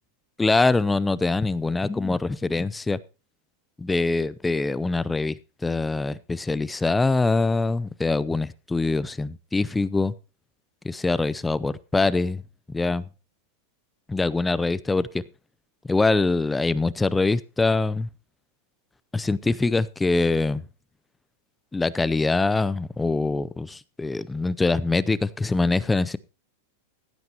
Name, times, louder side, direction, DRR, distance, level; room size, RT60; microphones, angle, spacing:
voice 1, 0.4-3.0 3.8-10.1 10.8-12.4 12.7-13.1 14.1-15.1 15.8-18.1 19.1-20.6 21.7-26.2, left 3 dB, 10° left, 0.5 m, -24 dB
16.0 x 9.5 x 2.9 m
supercardioid pair, 140°, 0 cm